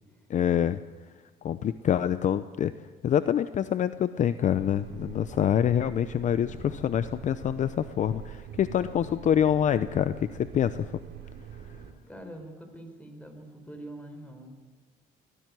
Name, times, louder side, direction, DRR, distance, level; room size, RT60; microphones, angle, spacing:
voice 1, 0.3-0.8 1.4-2.7 3.0-11.0, left 9 dB, 45° left, 13 dB, 0.7 m, -26 dB
sound 1, 4.5-11.9, right 9 dB, 80° right, 2.8 m, -44 dB
voice 2, 12.1-14.6, right 1 dB, 10° left, 5 dB, 4.5 m, -44 dB
20.5 x 15.0 x 9.6 m, 1.4 s
cardioid pair, 110°, 17 cm